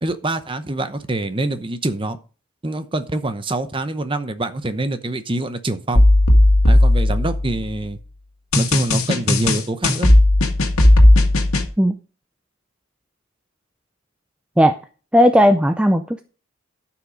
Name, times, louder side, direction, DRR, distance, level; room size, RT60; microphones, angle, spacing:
voice 1, 0.0-2.2 2.6-6.0 6.7-8.0 8.6-10.1, right 2 dB, 25° right, 0.8 m, -25 dB
sound 1, 5.9-7.8 8.5-11.7, left 1 dB, 85° left, 1.9 m, -14 dB
voice 2, 15.1-16.2, equal, 5° right, 0.4 m, -15 dB
12.0 x 5.9 x 5.1 m
head